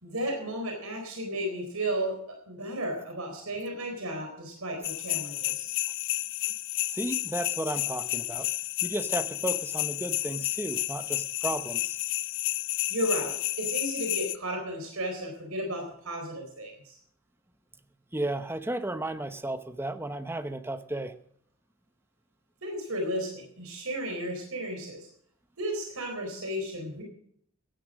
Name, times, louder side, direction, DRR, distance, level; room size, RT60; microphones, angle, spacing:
voice 1, 0.0-5.7 12.9-17.0 22.6-25.0 25.6-27.0, equal, 85° right, 2 dB, 4.0 m, -34 dB
sound 1, 4.8-14.4, left 17 dB, 60° left, 0.5 m, -31 dB
voice 2, 6.9-8.5 8.8-12.0 18.1-21.1, right 1 dB, 10° right, 10 dB, 0.9 m, -33 dB
16.0 x 10.0 x 6.4 m, 0.66 s
head